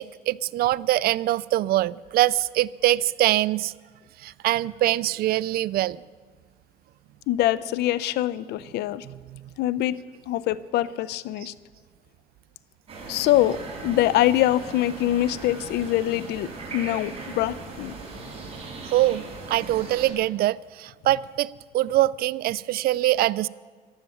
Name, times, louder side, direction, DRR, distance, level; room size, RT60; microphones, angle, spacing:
voice 1, 0.0-3.7 4.2-6.0 9.1-9.4 18.9-23.5, right 15 dB, 65° right, 20 dB, 0.4 m, -24 dB
voice 2, 7.3-9.1 9.6-10.0 10.3-11.5 13.1-17.9, left 14 dB, 80° left, 18 dB, 0.6 m, -24 dB
sound 1, 12.9-20.1, right 3 dB, 35° right, 4.6 m, -38 dB
14.5 x 12.0 x 7.1 m, 1.5 s
cardioid pair, 110°, 17 cm